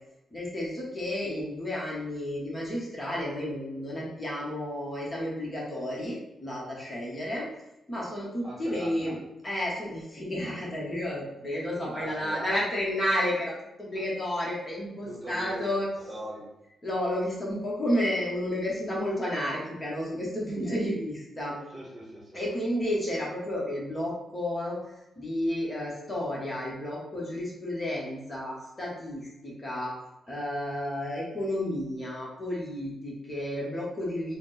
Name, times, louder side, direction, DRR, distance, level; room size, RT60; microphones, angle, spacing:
voice 1, 0.3-7.5 7.9-9.2 9.4-15.9 16.8-21.6 22.3-29.9 30.3-34.4, left 1 dB, 20° left, -4 dB, 1.0 m, -31 dB
voice 2, 8.4-9.1 11.9-12.5 15.1-15.7 16.1-16.5 21.7-22.5, right 1 dB, 30° right, -3 dB, 1.0 m, -40 dB
4.2 x 2.1 x 3.9 m, 0.89 s
wide cardioid pair, 150°, 0 cm